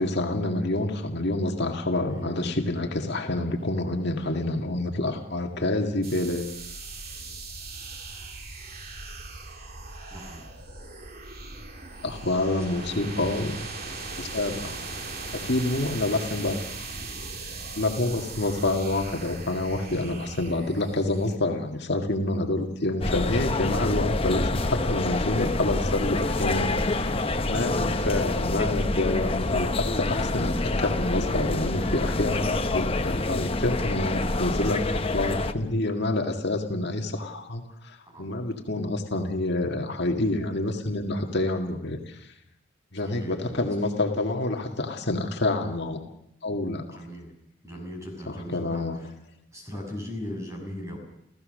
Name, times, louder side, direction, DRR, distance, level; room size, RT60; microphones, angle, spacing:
voice 1, 0.0-6.6 12.0-13.6 14.2-14.8 15.3-16.6 17.8-42.3 42.9-46.0 46.4-47.0 48.3-49.0, left 2 dB, 60° left, 3 dB, 2.0 m, -28 dB
voice 2, 2.1-2.5 10.1-10.5 12.7-13.0 38.1-38.3 43.0-43.7 46.8-47.3 47.6-49.1 49.5-51.0, equal, 15° right, 1 dB, 6.9 m, -38 dB
sound 1, 6.0-21.4, right 3 dB, 50° right, 2.6 m, -39 dB
sound 2, 23.0-35.5, left 2 dB, 30° left, 0.9 m, -27 dB
29.5 x 15.5 x 6.6 m, 0.78 s
head